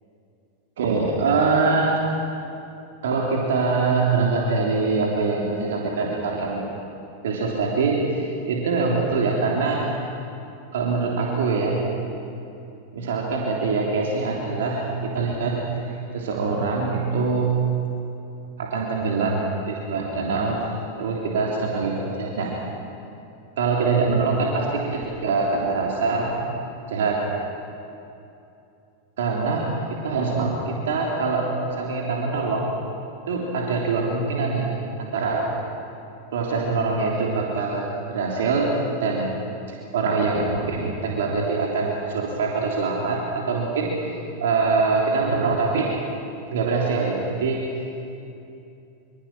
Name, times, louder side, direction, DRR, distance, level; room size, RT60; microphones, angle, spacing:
voice 1, 0.8-2.0 3.0-6.8 7.2-9.9 10.7-11.8 12.9-17.6 18.6-20.6 21.0-22.6 23.6-26.3 26.9-27.3 29.2-31.5 31.8-32.7 33.3-34.7 35.0-35.4 36.3-38.7 39.0-39.3 39.7-45.9 46.5-47.6, right 4 dB, 60° right, -2 dB, 3.4 m, -24 dB
25.5 x 25.5 x 6.1 m, 2.7 s
figure-of-eight pair, 90°, 0 cm